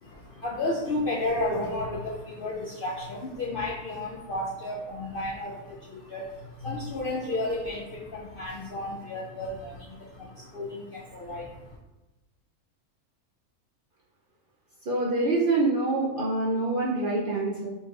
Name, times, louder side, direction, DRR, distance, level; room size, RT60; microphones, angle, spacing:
voice 1, 0.0-11.8, left 2 dB, 60° left, -3 dB, 0.5 m, -33 dB
voice 2, 14.9-17.7, right 2 dB, 55° right, -4 dB, 0.6 m, -25 dB
4.3 x 2.4 x 4.6 m, 1.1 s
omnidirectional pair, 1.5 m